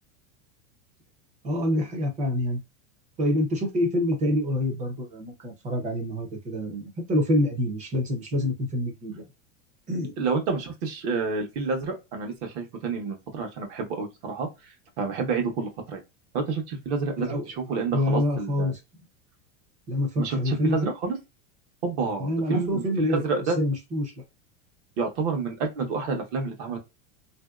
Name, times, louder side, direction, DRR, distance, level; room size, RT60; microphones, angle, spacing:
voice 1, 1.4-2.6 3.2-9.2 9.9-10.1 17.2-17.5 17.9-18.8 19.9-20.9 22.2-23.2 23.6-24.1, left 1 dB, 20° right, 0.6 m, -26 dB
voice 2, 10.2-14.5 15.0-16.0 16.3-18.7 20.2-21.2 21.8-23.6 25.0-26.8, right 4 dB, 50° right, 1.0 m, -29 dB
3.0 x 2.7 x 2.3 m
supercardioid pair, 165°, 40 cm